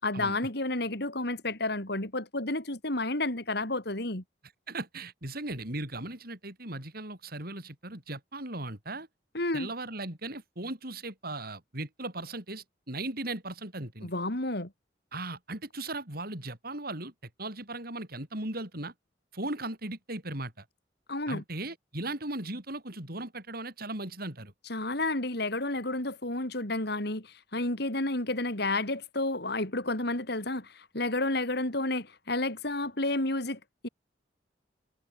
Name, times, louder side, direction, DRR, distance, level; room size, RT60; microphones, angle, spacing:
voice 1, 0.0-4.2 9.3-9.7 14.0-14.7 21.1-21.4 24.7-33.9, left 2 dB, 65° left, 4.9 m, -31 dB
voice 2, 4.7-9.1 9.5-14.1 15.1-17.1 17.4-18.9 19.3-20.6 21.3-24.5, right 2 dB, 55° right, 7.7 m, -37 dB
head